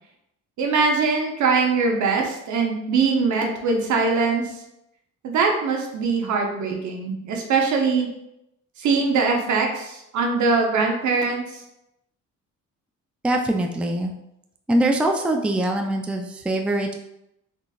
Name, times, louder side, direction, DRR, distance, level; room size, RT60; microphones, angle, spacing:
voice 1, 0.6-4.5 5.2-8.1 8.8-11.6, right 4 dB, 70° right, 2 dB, 0.9 m, -22 dB
voice 2, 13.2-14.1 14.7-16.9, right 1 dB, 5° right, 3 dB, 0.4 m, -23 dB
3.8 x 3.7 x 2.4 m, 0.82 s
cardioid pair, 90°, 30 cm